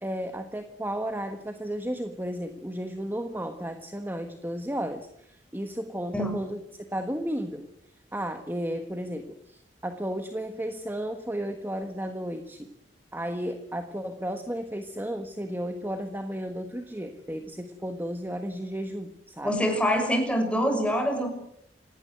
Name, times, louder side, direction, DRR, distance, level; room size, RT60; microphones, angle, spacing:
voice 1, 0.0-6.6 6.9-7.7 8.1-12.7 13.1-19.6, equal, 10° right, 7 dB, 1.4 m, -33 dB
voice 2, 19.4-21.3, equal, 5° left, 4 dB, 6.2 m, -25 dB
27.0 x 18.0 x 7.9 m, 0.77 s
head